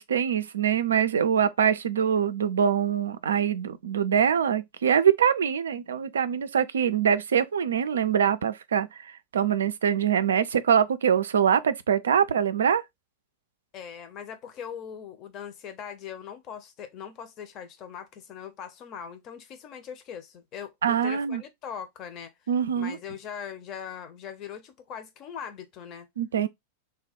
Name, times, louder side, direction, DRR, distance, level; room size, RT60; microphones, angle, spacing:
voice 1, 0.0-12.8 20.8-21.4 22.5-23.0 26.2-26.5, right 8 dB, 65° right, 0.3 m, -24 dB
voice 2, 13.7-22.3 22.7-26.1, left 8 dB, 35° left, 0.7 m, -40 dB
3.4 x 2.2 x 4.1 m
figure-of-eight pair, 90°, 0 cm